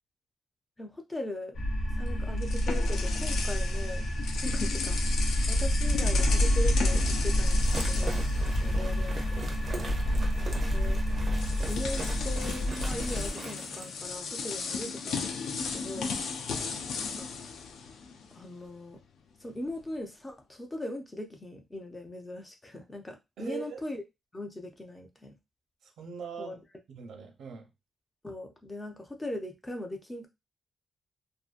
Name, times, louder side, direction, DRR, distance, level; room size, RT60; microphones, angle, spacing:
voice 1, 0.8-1.6 2.0-4.1 4.4-5.0 5.5-7.6 7.9-8.3 8.6-9.6 10.7-11.0 11.6-15.3 15.7-16.2 17.0-17.4 18.3-19.0 19.4-24.0 24.3-25.4 26.4-26.5 28.2-30.3, left 1 dB, 15° left, 0.5 m, -39 dB
sound 1, 1.6-13.3, equal, 50° left, 1.0 m, -28 dB
sound 2, 1.9-9.2 9.5-9.7 10.8-10.9 11.3-18.5, left 5 dB, 75° left, 0.4 m, -36 dB
sound 3, 7.4-13.9, right 3 dB, 35° right, 0.5 m, -41 dB
voice 2, 10.0-10.4 16.5-16.8 23.4-23.8 25.8-26.6 26.9-27.7, right 5 dB, 80° right, 0.7 m, -42 dB
2.6 x 2.5 x 2.4 m
wide cardioid pair, 175°, 0 cm